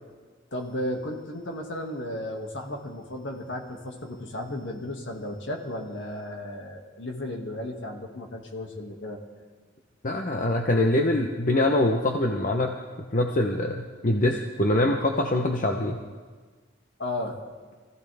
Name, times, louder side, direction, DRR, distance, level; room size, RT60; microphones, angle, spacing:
voice 1, 0.5-9.2 17.0-17.4, left 1 dB, 65° left, 2 dB, 2.1 m, -34 dB
voice 2, 10.0-12.7 13.1-16.0, left 1 dB, 40° left, 3 dB, 0.8 m, -24 dB
23.5 x 15.0 x 3.5 m, 1.5 s
head